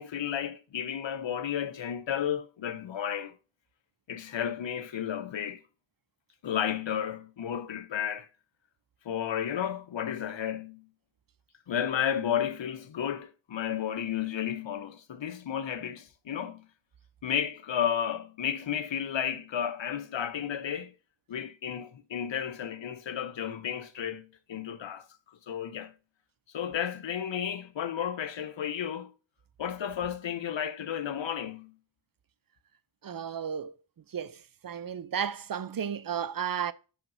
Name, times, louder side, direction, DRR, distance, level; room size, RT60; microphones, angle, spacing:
voice 1, 0.0-3.4 4.1-5.6 6.4-8.3 9.0-10.9 11.7-16.7 17.2-20.9 21.3-25.1 25.5-25.9 26.5-29.1 29.6-31.8, left 9 dB, 80° left, 0.7 m, -32 dB
voice 2, 33.0-33.7 34.1-36.7, right 8 dB, 50° right, 0.5 m, -33 dB
8.1 x 5.8 x 2.6 m
cardioid pair, 40°, 44 cm